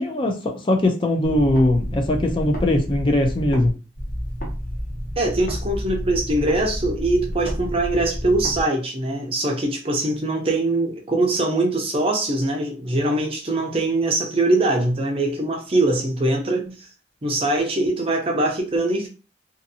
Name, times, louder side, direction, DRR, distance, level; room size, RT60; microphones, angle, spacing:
voice 1, 0.0-3.7, left 1 dB, 25° left, 0.4 m, -20 dB
sound 1, 1.2-3.7 4.0-8.6, equal, 45° left, 1.0 m, -30 dB
voice 2, 5.2-16.8 17.2-19.1, right 2 dB, 30° right, 0.5 m, -22 dB
2.6 x 2.5 x 2.7 m
head